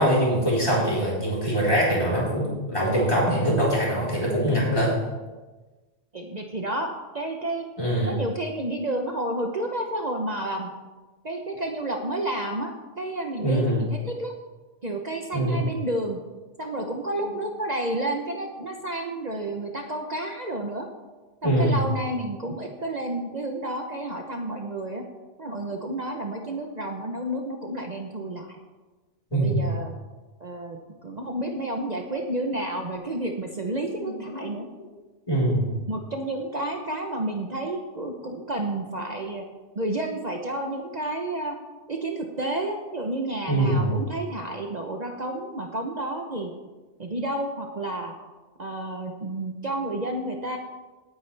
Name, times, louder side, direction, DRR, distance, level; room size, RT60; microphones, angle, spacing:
voice 1, 0.0-4.9 7.8-8.1 13.4-13.8 15.3-15.6 21.4-21.8 29.3-29.6 34.0-34.4 35.3-35.7 43.5-44.0, right 1 dB, 25° left, -6 dB, 4.3 m, -23 dB
voice 2, 6.1-7.7 8.1-10.7 11.2-14.3 14.8-16.2 16.6-20.9 21.4-25.0 25.4-28.6 29.3-30.0 30.4-34.7 35.9-39.4 39.8-41.5 41.9-46.5 47.0-48.1 48.6-50.6, right 1 dB, 40° right, 2 dB, 1.0 m, -30 dB
18.0 x 9.6 x 3.4 m, 1.2 s
omnidirectional pair, 1.2 m